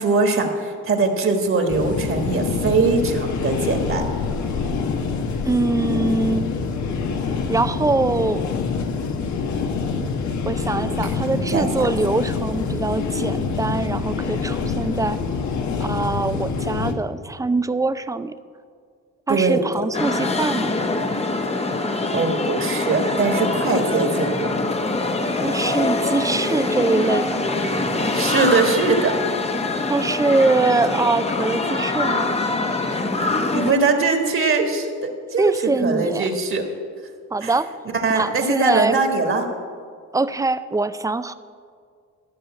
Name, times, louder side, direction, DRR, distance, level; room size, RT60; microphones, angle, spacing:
voice 1, 0.0-4.0 10.9-11.9 19.3-19.6 22.1-24.5 28.1-29.1 33.5-36.7 37.4-37.5 37.9-39.5, right 4 dB, 45° right, 4 dB, 1.6 m, -21 dB
sound 1, 1.7-16.9, left 5 dB, 70° left, 1.2 m, -25 dB
voice 2, 5.5-6.5 7.5-8.4 10.5-15.2 15.8-18.3 19.3-20.7 25.4-27.5 29.9-32.4 35.4-36.3 37.3-37.7 38.1-39.0 40.1-41.3, right 3 dB, 10° right, 13 dB, 0.4 m, -23 dB
sound 2, 19.9-33.7, left 2 dB, 20° left, 0.9 m, -24 dB
13.5 x 5.6 x 8.7 m, 2.1 s
cardioid pair, 90°, 30 cm